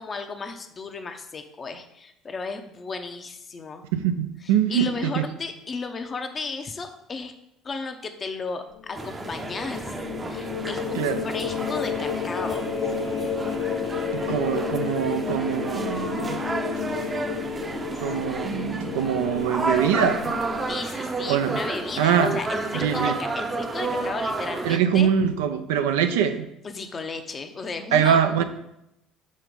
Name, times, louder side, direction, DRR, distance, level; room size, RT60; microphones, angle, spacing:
voice 1, 0.0-3.8 4.4-7.3 7.6-9.9 10.2-12.7 20.7-25.1 26.6-28.4, left 4 dB, 35° left, 7 dB, 0.8 m, -34 dB
voice 2, 3.9-5.2 10.9-11.2 14.1-16.4 18.0-20.3 21.3-21.6 22.0-22.3 22.7-23.2 24.6-26.5 27.9-28.4, right 8 dB, 80° right, 8 dB, 0.5 m, -23 dB
sound 1, 8.8-20.7, left 7 dB, 75° left, 1.0 m, -31 dB
sound 2, 9.0-24.8, right 3 dB, 25° right, 0.7 m, -31 dB
6.4 x 3.0 x 5.2 m, 0.83 s
hypercardioid pair, 70°, 0 cm